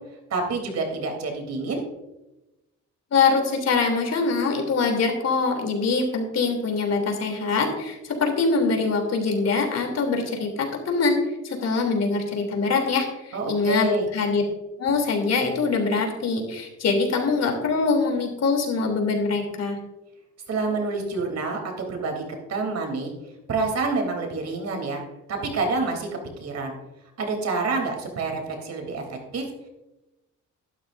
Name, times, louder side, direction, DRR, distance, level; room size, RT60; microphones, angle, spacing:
voice 1, 0.3-1.8 13.3-14.1 20.5-22.2 22.5-23.1 23.5-25.0 25.3-26.1 26.4-26.7 27.2-29.5, right 3 dB, 60° right, 2 dB, 3.5 m, -27 dB
voice 2, 3.1-11.2 11.4-13.9 14.1-14.4 14.8-19.8, left 4 dB, 55° left, 3 dB, 3.3 m, -23 dB
13.5 x 12.0 x 2.7 m, 0.99 s
cardioid pair, 90°, 30 cm